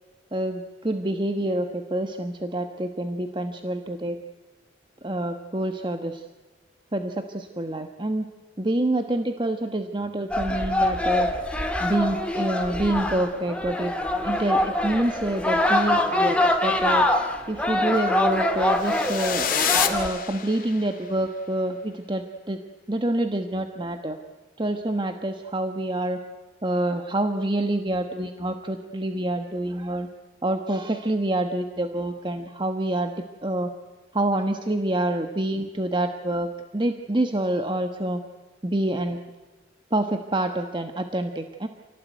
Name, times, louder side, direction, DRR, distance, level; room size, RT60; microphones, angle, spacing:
voice 1, 0.3-4.2 5.0-6.2 6.9-8.3 8.6-11.3 11.8-13.9 14.2-17.1 17.5-19.5 19.8-22.6 22.9-24.2 24.6-26.2 26.6-30.1 30.4-33.1 33.4-33.7 34.1-38.2 38.6-39.2 39.9-41.7, right 1 dB, 25° right, 6 dB, 1.3 m, -27 dB
sound 1, 10.3-20.1, left 1 dB, 5° left, 2.3 m, -24 dB
sound 2, 18.7-20.9, left 8 dB, 45° left, 2.5 m, -27 dB
28.5 x 18.5 x 9.3 m, 1.3 s
head